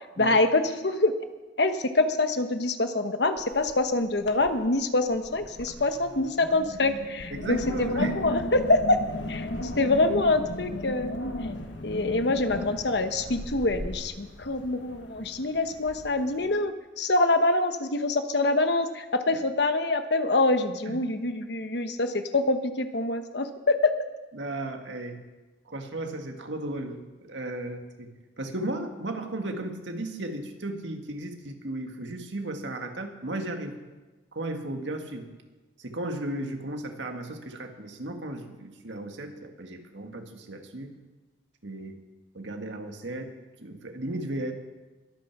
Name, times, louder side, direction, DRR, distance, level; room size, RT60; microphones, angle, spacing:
voice 1, 0.2-1.1 1.6-9.0 9.3-9.5 9.7-11.1 11.8-23.9, left 2 dB, 65° left, 8 dB, 1.1 m, -25 dB
Wind, 3.4-3.9 4.2-4.7 5.1-16.6, left 1 dB, 85° left, 1.5 m, -36 dB
voice 2, 7.3-8.2 20.9-21.0 24.3-25.2 25.7-28.1 28.4-33.8 34.3-35.3 35.8-41.0 41.6-42.0 42.3-43.3 43.6-44.5, right 1 dB, 85° right, 5 dB, 1.8 m, -35 dB
22.5 x 9.1 x 6.0 m, 1.2 s
head